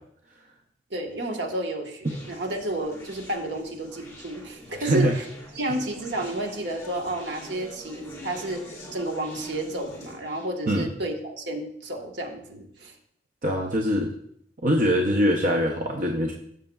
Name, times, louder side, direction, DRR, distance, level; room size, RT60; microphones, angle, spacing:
voice 1, 0.9-5.2 5.6-12.9, right 1 dB, 65° right, 3 dB, 1.2 m, -31 dB
Conversation, 2.0-10.5, equal, 15° left, 1.9 m, -44 dB
voice 2, 4.8-5.2 10.7-10.9 13.4-14.1 14.6-16.3, equal, 45° right, 1 dB, 0.7 m, -23 dB
14.0 x 6.5 x 2.3 m, 0.70 s
head